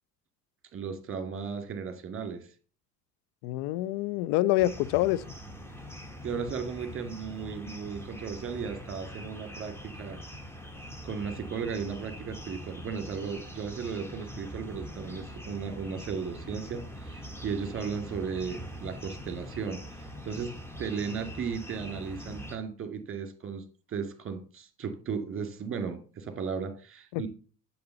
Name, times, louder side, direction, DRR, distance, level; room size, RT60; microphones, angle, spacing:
voice 1, 0.7-2.5 6.2-10.2 11.0-19.8 20.2-20.5 20.8-27.3, right 6 dB, 25° right, 2.2 m, -35 dB
voice 2, 3.4-5.2 27.1-27.3, left 16 dB, 45° left, 0.5 m, -26 dB
sound 1, 4.6-22.6, equal, 5° left, 1.8 m, -43 dB
10.5 x 4.1 x 6.7 m
figure-of-eight pair, 60°, 48 cm